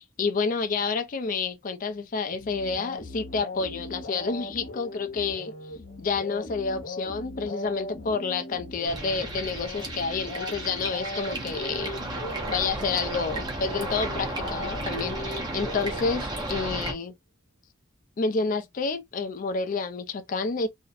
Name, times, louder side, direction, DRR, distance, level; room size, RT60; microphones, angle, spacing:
voice 1, 0.0-5.5 6.0-12.0 12.5-17.1 18.2-20.7, left 4 dB, 40° left, 0.4 m, -29 dB
sound 1, 2.3-16.6, left 1 dB, 80° left, 0.8 m, -39 dB
sound 2, 8.8-16.9, right 2 dB, 20° right, 0.6 m, -34 dB
2.6 x 2.0 x 2.3 m
head